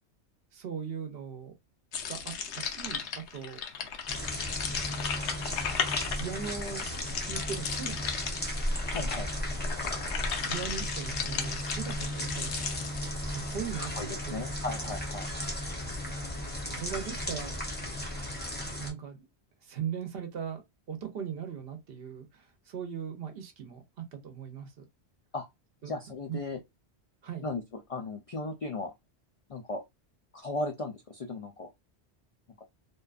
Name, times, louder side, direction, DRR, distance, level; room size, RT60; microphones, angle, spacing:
voice 1, 0.5-1.5 2.1-3.6 5.9-6.8 7.2-8.2 10.4-12.5 13.0-14.4 16.6-17.6 18.7-19.2 19.6-20.6 20.9-23.8 24.1-24.9 25.8-25.9 26.3-26.4 27.2-27.5, right 8 dB, 65° right, 0.8 m, -39 dB
sound 1, 1.9-13.6, left 7 dB, 85° left, 0.9 m, -36 dB
sound 2, 4.1-18.9, left 1 dB, 10° left, 0.5 m, -35 dB
voice 2, 8.9-9.3 13.8-15.3 25.3-25.5 25.8-26.6 27.4-27.6 27.9-28.9 29.5-29.8 30.3-31.7, left 2 dB, 65° left, 0.3 m, -36 dB
2.5 x 2.2 x 2.4 m
omnidirectional pair, 1.1 m